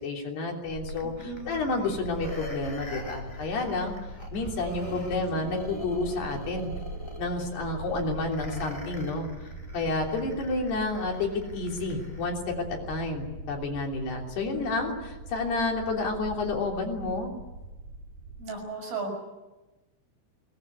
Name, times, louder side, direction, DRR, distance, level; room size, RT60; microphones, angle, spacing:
voice 1, 0.0-4.0 4.3-6.7 7.2-9.5 9.7-17.3, left 3 dB, 55° left, 0 dB, 5.1 m, -30 dB
sound 1, 0.7-18.4, right 2 dB, 35° right, 5.8 m, -42 dB
sound 2, 0.9-12.3 12.8-12.9, left 1 dB, 5° left, 2.3 m, -44 dB
voice 2, 1.0-1.7 4.6-5.1 14.5-14.8 18.4-19.2, right 3 dB, 70° right, 3 dB, 8.8 m, -37 dB
24.0 x 20.0 x 9.6 m, 1.1 s
omnidirectional pair, 5.9 m